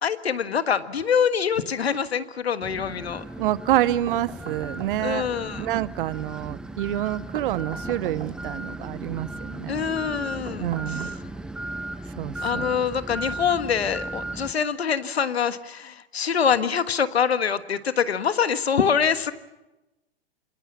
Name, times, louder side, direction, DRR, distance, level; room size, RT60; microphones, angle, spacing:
voice 1, 0.0-3.2 5.0-5.7 9.7-11.1 12.4-19.3, left 7 dB, 85° left, 12 dB, 1.6 m, -25 dB
sound 1, 2.6-14.5, right 1 dB, 5° right, 0.9 m, -36 dB
voice 2, 3.4-5.3 5.6-9.9 10.6-11.1 12.2-12.7, right 13 dB, 55° right, 18 dB, 0.9 m, -27 dB
sound 2, 4.1-5.3 7.3-8.6 10.5-11.6, right 6 dB, 85° right, 2.2 m, -43 dB
26.5 x 22.0 x 7.3 m, 0.99 s
hypercardioid pair, 115°, 31 cm